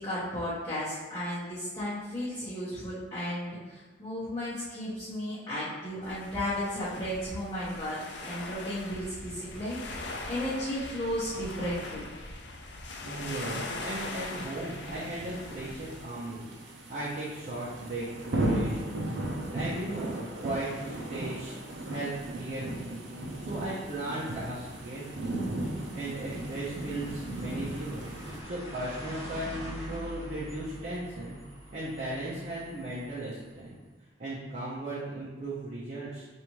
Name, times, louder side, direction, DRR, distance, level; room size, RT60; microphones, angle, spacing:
voice 1, 0.0-12.0, equal, 25° left, -12 dB, 1.0 m, -34 dB
sound 1, 6.0-16.0, left 2 dB, 75° left, 0.6 m, -41 dB
voice 2, 13.0-18.8 19.2-21.6 21.9-25.6 25.9-28.1 28.4-31.4 31.7-33.8 34.2-36.3, right 1 dB, 45° right, -8 dB, 0.8 m, -37 dB
sound 2, 13.8-28.4, right 1 dB, 80° right, 0.6 m, -36 dB
sound 3, 15.3-33.7, equal, 15° right, 1.0 m, -47 dB
5.0 x 2.7 x 3.0 m, 1.3 s
head